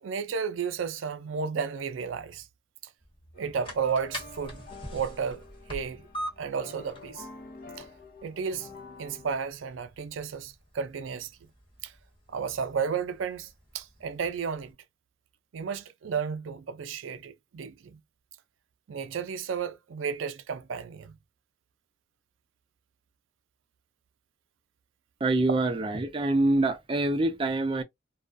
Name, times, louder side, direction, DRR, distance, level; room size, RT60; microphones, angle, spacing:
voice 1, 0.0-2.5 3.4-4.6 4.9-5.4 5.7-6.1 6.4-7.3 7.8-7.9 8.2-8.7 9.0-11.3 11.8-11.9 12.3-14.7 15.5-18.0 18.9-21.2, right 6 dB, 85° right, 0.4 m, -33 dB
sound 1, 3.0-14.7, equal, 25° left, 1.0 m, -45 dB
sound 2, 3.3-9.3, left 3 dB, 50° left, 0.5 m, -48 dB
voice 2, 25.2-27.8, right 2 dB, 25° right, 0.4 m, -25 dB
2.3 x 2.2 x 2.5 m
head